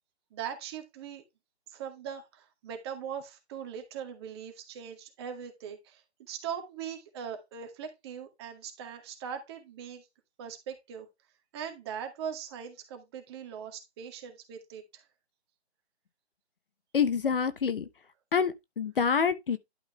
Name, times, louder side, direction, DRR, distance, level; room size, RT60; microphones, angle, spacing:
voice 1, 0.3-1.2 1.7-10.1 10.4-11.1 11.5-15.0, right 8 dB, 25° right, 2.0 m, -40 dB
voice 2, 16.9-17.8 18.3-19.6, left 6 dB, 55° left, 1.1 m, -27 dB
11.5 x 5.5 x 3.1 m
figure-of-eight pair, 150°, 33 cm